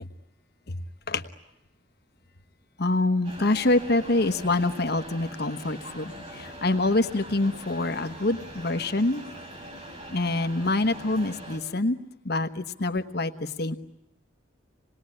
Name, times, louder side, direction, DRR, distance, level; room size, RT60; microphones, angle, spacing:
voice 1, 2.8-9.2 10.1-12.0 12.2-13.7, left 2 dB, 55° left, 8 dB, 1.2 m, -26 dB
sound 1, 3.2-11.6, right 1 dB, 35° right, 7.4 m, -42 dB
27.0 x 20.0 x 9.8 m, 0.91 s
head